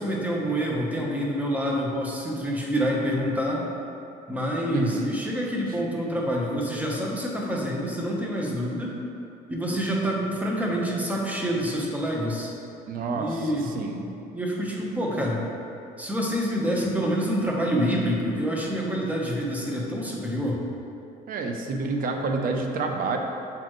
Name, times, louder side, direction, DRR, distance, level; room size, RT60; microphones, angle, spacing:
voice 1, 0.0-3.6 4.3-9.0 9.5-12.5 13.1-15.4 16.0-20.6, equal, 10° right, -2 dB, 1.0 m, -27 dB
voice 2, 4.7-5.1 12.9-14.0 21.3-23.2, right 4 dB, 55° right, 3 dB, 0.7 m, -28 dB
7.2 x 4.3 x 3.1 m, 2.7 s
cardioid pair, 110°, 17 cm